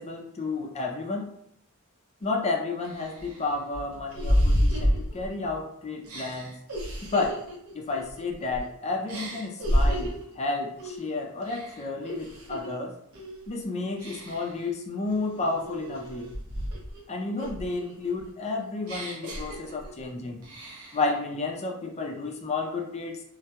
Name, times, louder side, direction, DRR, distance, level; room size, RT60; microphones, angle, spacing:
voice 1, 0.0-1.3 2.2-6.5 7.1-7.4 7.7-13.0 13.5-16.3 17.1-20.4 20.9-23.2, left 3 dB, 30° left, 2 dB, 0.4 m, -31 dB
sound 1, 2.2-2.3 2.8-5.6 6.0-8.7 9.1-10.3 10.8-11.1 11.4-12.7 13.1-13.5 14.0-14.6 15.1-17.0 17.4-20.1 20.4-21.1, equal, 85° right, 0.7 m, -30 dB
2.2 x 2.2 x 2.8 m, 0.71 s
head